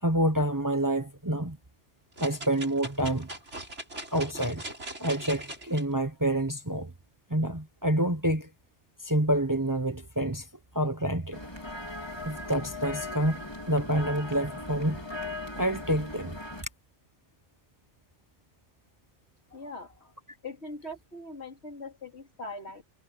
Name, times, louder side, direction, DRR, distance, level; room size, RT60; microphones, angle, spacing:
voice 1, 0.0-1.6 2.2-3.3 4.1-4.6 5.0-6.9 7.3-8.5 9.0-10.5 10.7-11.4 12.2-15.0 15.6-16.4, right 1 dB, 15° right, 1.2 m, -28 dB
sound 1, 2.2-5.8 6.4-6.5, right 1 dB, 75° right, 6.5 m, -40 dB
sound 2, 11.3-16.6, left 2 dB, 20° left, 4.7 m, -38 dB
voice 2, 19.5-19.9 20.4-22.8, left 2 dB, 65° left, 3.4 m, -41 dB
omnidirectional pair, 1.2 m